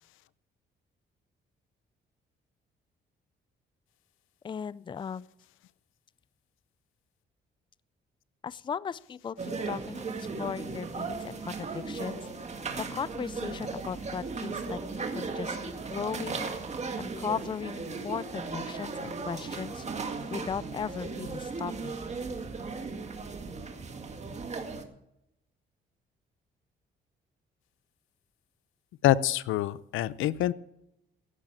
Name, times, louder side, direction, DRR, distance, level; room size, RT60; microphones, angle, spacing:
voice 1, 4.4-5.3 8.4-12.3 12.8-16.5 17.0-22.0, left 7 dB, 25° left, 20 dB, 0.4 m, -37 dB
sound 1, 9.4-24.8, right 4 dB, 35° right, 2.0 m, -36 dB
voice 2, 29.0-30.5, left 13 dB, 85° left, 17 dB, 0.6 m, -26 dB
16.5 x 6.6 x 8.8 m, 0.83 s
cardioid pair, 90°, 20 cm